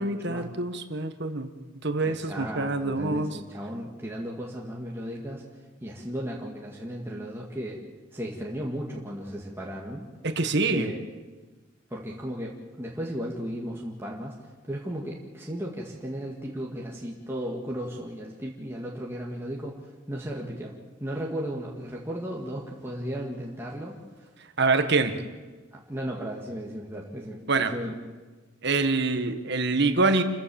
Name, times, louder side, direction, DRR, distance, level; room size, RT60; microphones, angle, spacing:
voice 1, 0.0-1.5 1.8-3.3 10.2-10.9 24.6-25.1 27.5-27.7 28.6-30.2, right 3 dB, 55° right, 8 dB, 1.7 m, -25 dB
voice 2, 2.0-5.5 5.8-7.8 8.1-10.0 10.7-11.0 11.9-14.4 14.6-20.7 21.0-24.3 25.0-25.2 25.7-28.0, equal, 10° right, -3 dB, 2.1 m, -35 dB
28.5 x 15.0 x 7.2 m, 1.3 s
head